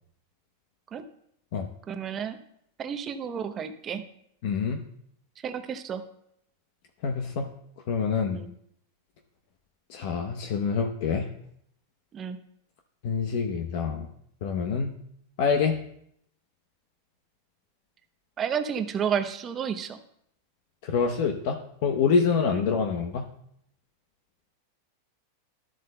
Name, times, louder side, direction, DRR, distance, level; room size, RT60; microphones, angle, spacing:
voice 1, 1.9-2.4 2.8-4.0 5.4-6.0 8.3-8.5 12.1-12.4 18.4-20.0 22.5-22.6, right 7 dB, 30° right, 8 dB, 0.8 m, -31 dB
voice 2, 4.4-4.8 7.0-7.5 7.9-8.4 9.9-11.3 13.0-14.1 14.4-14.9 15.4-15.8 20.8-23.3, left 5 dB, 60° left, 4 dB, 0.9 m, -26 dB
12.5 x 7.5 x 2.2 m, 0.71 s
hypercardioid pair, 125°, 0 cm